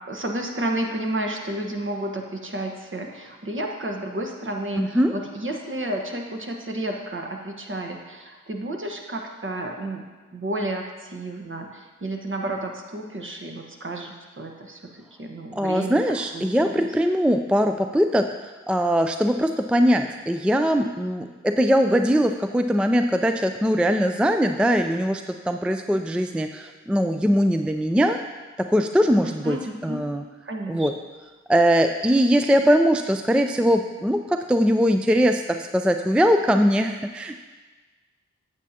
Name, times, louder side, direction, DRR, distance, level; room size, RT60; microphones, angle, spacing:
voice 1, 0.1-10.1 10.3-16.0 16.3-16.9 29.2-30.0 30.4-30.9, right 1 dB, 40° right, 2 dB, 1.3 m, -31 dB
voice 2, 4.8-5.1 15.5-28.2 28.6-29.6 29.8-30.2 30.7-30.9 31.5-37.4, equal, 5° right, 6 dB, 0.4 m, -21 dB
8.3 x 8.0 x 2.9 m, 1.3 s
supercardioid pair, 40°, 30 cm